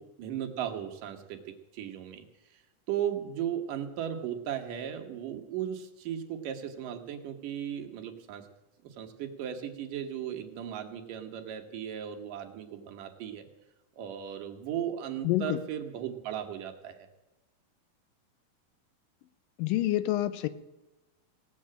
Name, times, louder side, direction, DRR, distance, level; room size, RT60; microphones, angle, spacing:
voice 1, 0.0-2.2 2.9-8.5 8.8-13.4 14.0-17.1, right 9 dB, 75° right, 4 dB, 2.8 m, -36 dB
voice 2, 15.2-15.6 19.6-20.5, left 14 dB, 85° left, 14 dB, 2.4 m, -27 dB
17.0 x 7.6 x 8.7 m, 1.1 s
omnidirectional pair, 3.9 m